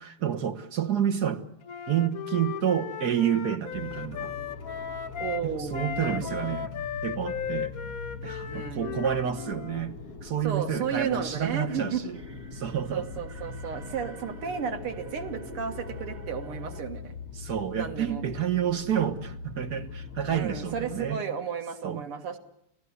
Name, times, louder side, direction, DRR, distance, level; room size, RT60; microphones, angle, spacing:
voice 1, 0.0-1.4 1.9-4.4 5.4-6.7 7.0-7.7 8.2-12.2 12.5-13.1 17.4-21.2 21.8-22.1, right 9 dB, 50° right, 1.8 m, -29 dB
Wind instrument woodwind instrument, 1.6-5.5 5.7-9.8, left 7 dB, 50° left, 1.3 m, -36 dB
sound 1, 3.7-21.1, left 5 dB, 90° left, 2.5 m, -42 dB
voice 2, 5.2-6.6 8.5-9.1 10.4-12.0 12.9-17.2 17.8-18.2 20.3-22.4, right 7 dB, 85° right, 2.7 m, -33 dB
sound 2, 12.1-17.0, right 4 dB, 30° right, 0.9 m, -46 dB
29.0 x 16.5 x 9.6 m
omnidirectional pair, 2.4 m